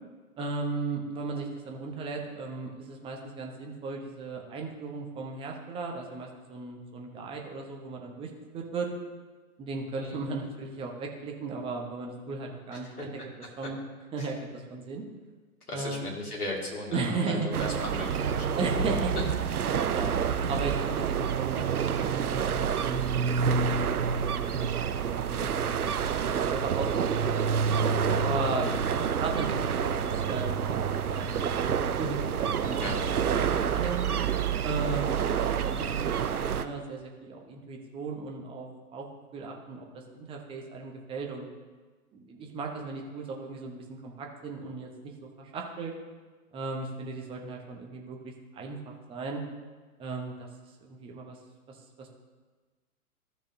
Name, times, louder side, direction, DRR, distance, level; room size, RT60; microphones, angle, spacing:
voice 1, 0.4-8.9 9.6-13.1 13.6-13.8 14.1-15.0 15.7-16.1 16.9-17.5 18.6-19.1 19.9-20.1 20.5-24.2 25.2-27.3 28.2-28.7 29.0-30.9 31.1-32.2 32.6-34.1 34.6-39.1 39.3-39.9 40.1-41.5 42.1-44.9 45.2-45.9 46.5-49.4 50.0-50.5 50.8-51.4 51.7-52.1, right 3 dB, 10° right, 1 dB, 0.8 m, -36 dB
voice 2, 9.9-10.2 12.7-13.1 14.2-14.3 15.7-18.6 27.8-28.2 32.8-33.0, left 1 dB, 80° left, -2 dB, 2.3 m, -37 dB
sound 1, 17.5-36.6, right 7 dB, 80° right, 0.6 m, -28 dB
14.0 x 6.5 x 2.7 m, 1.3 s
figure-of-eight pair, 110°, 44 cm